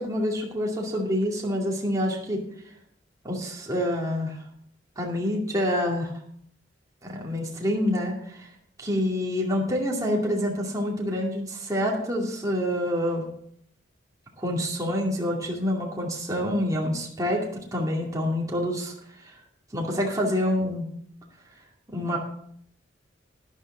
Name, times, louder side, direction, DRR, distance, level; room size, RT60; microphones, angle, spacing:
voice 1, 0.0-2.4 3.2-4.4 5.0-6.1 7.0-8.5 8.8-13.3 14.4-18.9 19.7-20.9 21.9-22.2, equal, 20° right, -2 dB, 2.3 m, -27 dB
13.0 x 10.5 x 3.8 m, 0.67 s
head